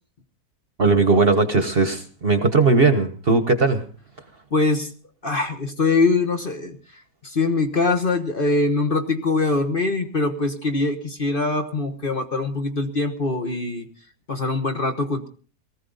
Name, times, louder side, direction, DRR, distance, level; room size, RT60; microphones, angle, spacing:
voice 1, 0.8-3.8, right 3 dB, 40° right, 8 dB, 1.3 m, -18 dB
voice 2, 4.5-4.9 5.2-6.8 7.2-13.8 14.3-15.3, left 3 dB, 35° left, 6 dB, 1.4 m, -23 dB
19.0 x 15.0 x 4.0 m, 0.41 s
omnidirectional pair, 1.7 m